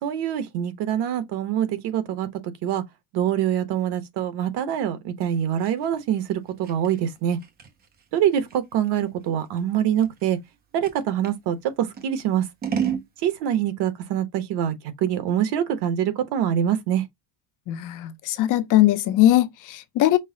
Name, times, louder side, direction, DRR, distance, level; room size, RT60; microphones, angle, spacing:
voice 1, 0.0-2.3 2.6-2.8 3.1-7.4 8.1-10.4 10.7-12.5 13.2-14.7 15.0-17.0, right 10 dB, 55° right, 1.0 m, -24 dB
Scissors, 5.2-11.4 11.9-13.1, right 8 dB, 20° right, 0.4 m, -33 dB
voice 2, 17.7-20.2, left 14 dB, 40° left, 0.5 m, -20 dB
5.5 x 2.0 x 3.7 m
cardioid pair, 175°, 49 cm